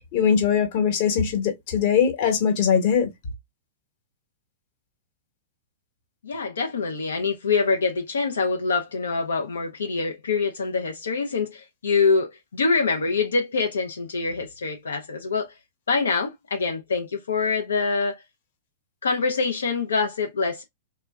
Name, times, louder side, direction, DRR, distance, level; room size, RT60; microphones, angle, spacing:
voice 1, 0.1-3.1, left 7 dB, 50° left, 1.0 m, -21 dB
voice 2, 6.2-15.5 15.9-18.1 19.0-20.6, left 4 dB, 85° left, 0.5 m, -25 dB
3.0 x 2.2 x 2.2 m
hypercardioid pair, 120°, 0 cm